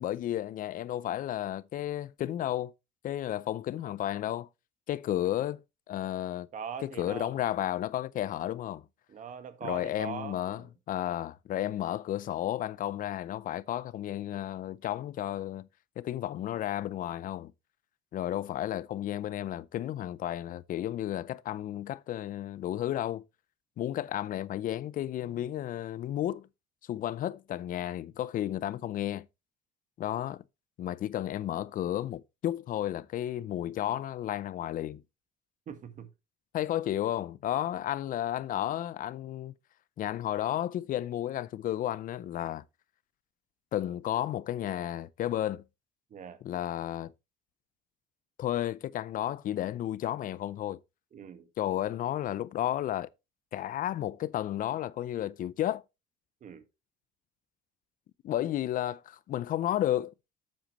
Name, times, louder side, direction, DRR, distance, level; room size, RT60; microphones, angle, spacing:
voice 1, 0.0-2.7 3.0-4.5 4.9-5.6 5.9-6.5 6.8-8.8 9.6-15.7 16.0-17.5 18.1-23.2 23.8-26.5 26.9-29.3 30.0-30.4 30.8-35.0 36.5-39.5 40.0-42.6 43.7-45.6 46.4-47.1 48.4-50.8 51.6-53.1 53.5-55.8 58.2-60.1, left 12 dB, 55° left, 0.5 m, -32 dB
voice 2, 6.5-7.3 9.1-10.7 35.7-36.1 46.1-46.4 51.1-51.5 56.4-56.6, right 7 dB, 50° right, 1.6 m, -41 dB
8.6 x 7.8 x 3.0 m
cardioid pair, 110°, 17 cm